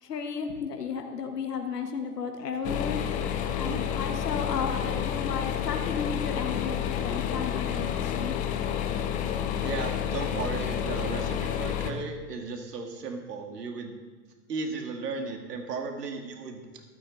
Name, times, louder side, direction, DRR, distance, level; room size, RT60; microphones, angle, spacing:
voice 1, 0.0-3.0 3.5-8.3, left 5 dB, 75° left, 4 dB, 1.6 m, -33 dB
sound 1, 2.6-11.9, left 9 dB, 15° left, 0.6 m, -30 dB
voice 2, 9.6-13.9 14.5-16.7, right 4 dB, 75° right, 4 dB, 2.3 m, -35 dB
14.5 x 12.0 x 4.1 m, 1.4 s
hypercardioid pair, 130°, 48 cm